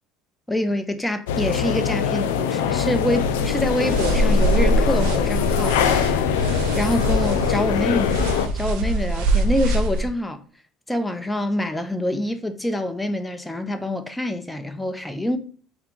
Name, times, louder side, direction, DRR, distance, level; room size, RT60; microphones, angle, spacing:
voice 1, 0.5-5.8 6.8-8.2 8.5-10.4 10.9-15.4, left 1 dB, 10° left, 0.5 m, -26 dB
sound 1, 1.3-8.5, left 8 dB, 90° left, 0.3 m, -23 dB
sound 2, 3.1-10.1, right 1 dB, 75° right, 0.6 m, -23 dB
3.4 x 2.3 x 3.7 m
supercardioid pair, 85°, 0 cm